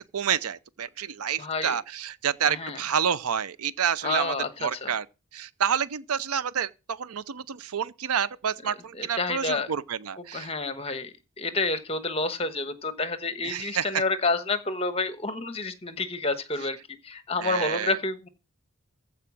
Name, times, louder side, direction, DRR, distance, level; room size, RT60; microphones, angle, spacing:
voice 1, 0.0-5.1 5.3-10.5 13.4-14.0 17.4-18.0, right 8 dB, 80° right, 0.6 m, -29 dB
voice 2, 1.4-1.7 2.4-2.8 4.0-4.9 8.9-9.7 10.3-16.8 17.0-18.3, left 3 dB, 25° left, 1.2 m, -29 dB
14.5 x 4.9 x 7.3 m
head